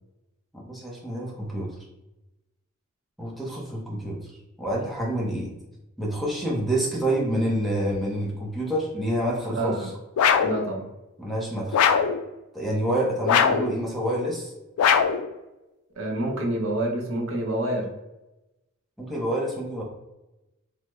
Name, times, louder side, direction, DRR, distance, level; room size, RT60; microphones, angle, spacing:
voice 1, 0.5-1.7 3.2-4.2 4.6-5.5 6.0-9.9 11.2-11.8 12.5-14.5 19.0-19.8, right 1 dB, ahead, -4 dB, 0.6 m, -27 dB
voice 2, 9.5-9.9 10.4-10.9 16.0-17.9, right 1 dB, 65° right, 0 dB, 0.7 m, -27 dB
sound 1, 10.2-10.6 11.7-12.2 13.3-13.7 14.8-15.3, left 7 dB, 90° left, 0.3 m, -20 dB
3.4 x 2.0 x 3.0 m, 0.98 s
head